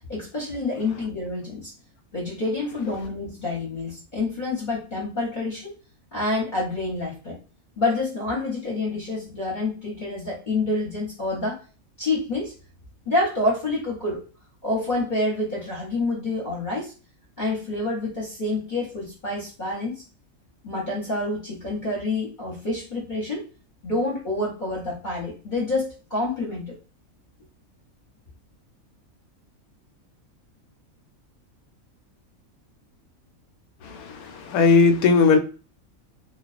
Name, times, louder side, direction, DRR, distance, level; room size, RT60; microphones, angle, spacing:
voice 1, 0.1-1.7 2.1-5.7 6.1-7.4 7.8-11.6 12.0-12.5 13.0-14.2 14.6-16.9 17.4-20.0 20.6-23.5 23.8-26.7, left 2 dB, 40° left, -5 dB, 0.8 m, -27 dB
voice 2, 33.8-35.4, left 4 dB, 85° left, 6 dB, 1.0 m, -18 dB
2.3 x 2.2 x 2.4 m, 0.36 s
omnidirectional pair, 1.5 m